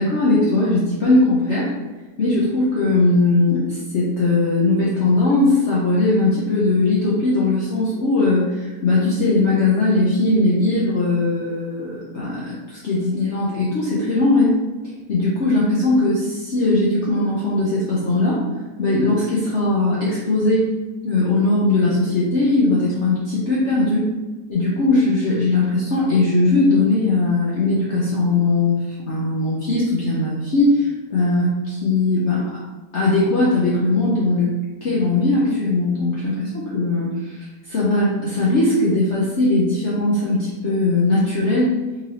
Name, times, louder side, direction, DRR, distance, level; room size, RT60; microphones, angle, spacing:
voice 1, 0.0-1.7 2.2-14.6 15.1-18.4 18.8-20.7 21.0-24.1 24.5-32.4 32.9-34.5 34.8-41.7, left 2 dB, 55° left, -7 dB, 0.8 m, -19 dB
3.8 x 3.2 x 2.9 m, 1.2 s
omnidirectional pair, 1.8 m